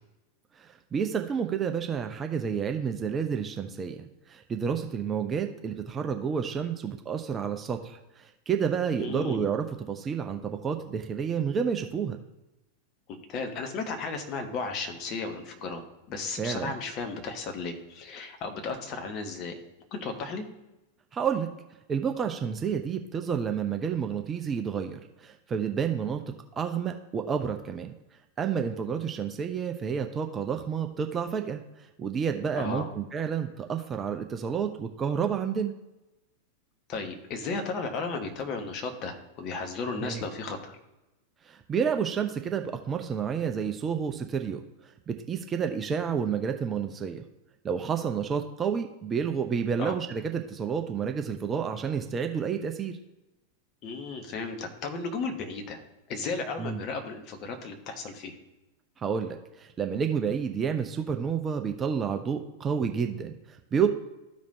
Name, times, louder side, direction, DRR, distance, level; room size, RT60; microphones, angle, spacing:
voice 1, 0.6-12.2 16.4-16.7 21.1-21.5 21.9-26.2 26.5-27.9 28.4-35.7 40.0-40.2 41.4-44.6 45.1-47.2 47.6-53.0 56.6-56.8 59.0-63.9, right 7 dB, 20° right, 5 dB, 0.6 m, -30 dB
voice 2, 8.9-9.4 13.3-19.5 19.9-20.4 32.5-32.9 36.9-40.8 49.8-50.0 53.8-55.8 56.1-58.4, left 4 dB, 35° left, 3 dB, 1.3 m, -34 dB
13.5 x 5.2 x 2.7 m, 0.98 s
figure-of-eight pair, 90°, 0 cm